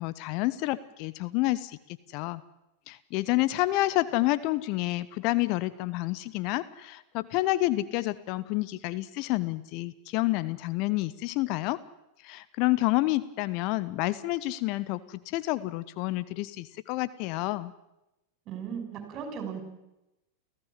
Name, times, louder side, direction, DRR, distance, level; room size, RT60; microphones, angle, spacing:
voice 1, 0.0-1.8 2.1-2.4 2.9-11.8 12.2-17.7, left 18 dB, 50° left, 15 dB, 0.9 m, -29 dB
voice 2, 18.5-19.6, right 7 dB, 40° right, 6 dB, 6.5 m, -36 dB
29.5 x 15.5 x 7.6 m, 0.93 s
figure-of-eight pair, 95°, 0 cm